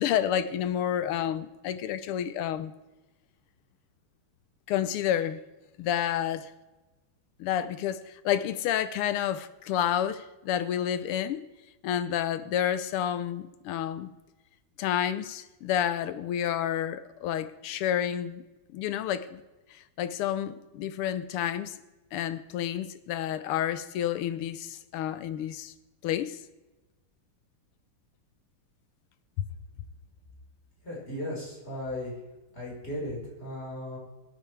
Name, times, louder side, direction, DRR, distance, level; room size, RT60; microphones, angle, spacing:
voice 1, 0.0-2.7 4.7-5.4 5.8-6.5 7.4-11.4 11.8-14.1 14.8-18.4 18.7-19.4 20.0-21.7 22.1-25.7 26.0-26.4 29.4-29.5, left 10 dB, 90° left, 1.7 m, -29 dB
voice 2, 30.8-32.1 32.5-34.0, left 1 dB, 30° left, 4.9 m, -36 dB
22.0 x 9.4 x 3.3 m
omnidirectional pair, 2.4 m